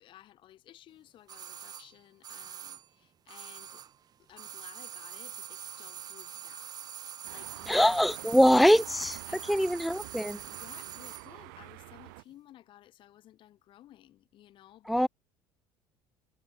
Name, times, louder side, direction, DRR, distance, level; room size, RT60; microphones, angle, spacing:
voice 1, 0.0-3.9 4.2-6.7 7.0-8.0 9.3-9.7 10.4-15.1, left 13 dB, 60° left, 3.2 m, -55 dB
sound 1, 1.3-4.0 4.3-11.3 11.6-11.7, right 9 dB, 45° right, 1.1 m, -44 dB
sound 2, 7.2-12.2, right 27 dB, 85° right, 1.9 m, -48 dB
voice 2, 7.7-10.4 14.9-15.1, equal, ahead, 0.4 m, -23 dB
supercardioid pair, 85°, 10 cm